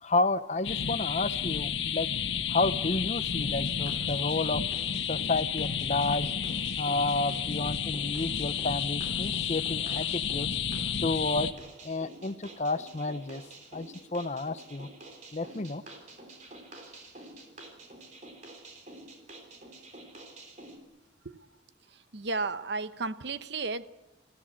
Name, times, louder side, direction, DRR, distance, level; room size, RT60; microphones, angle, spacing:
voice 1, 0.0-2.1 2.5-4.6 5.1-6.3 6.8-10.5 11.0-11.5 11.8-13.4 13.7-14.9 15.3-15.8, left 2 dB, 35° left, 13 dB, 0.7 m, -30 dB
sound 1, 0.6-11.5, left 7 dB, 75° left, 1.4 m, -31 dB
sound 2, 3.5-20.8, right 2 dB, 40° right, 3.5 m, -49 dB
voice 2, 22.1-23.9, right 3 dB, 60° right, 12 dB, 0.9 m, -33 dB
27.0 x 15.5 x 8.7 m, 1.1 s
head